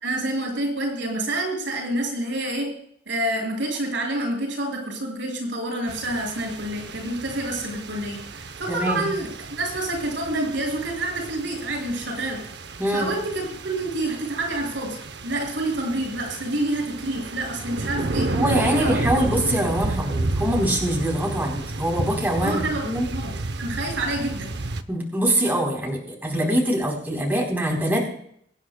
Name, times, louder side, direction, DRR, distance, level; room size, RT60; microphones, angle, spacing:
voice 1, 0.0-2.7 3.1-12.4 12.9-15.0 15.2-18.3 18.7-19.0 22.4-23.3 23.6-24.5, right 1 dB, 85° right, 1 dB, 6.3 m, -28 dB
sound 1, 5.9-24.8, right 2 dB, 65° right, 0.8 m, -31 dB
voice 2, 8.7-9.1 12.8-13.1 18.3-23.1 24.9-28.0, right 1 dB, 10° right, -2 dB, 3.8 m, -24 dB
23.5 x 9.8 x 2.3 m, 0.65 s
head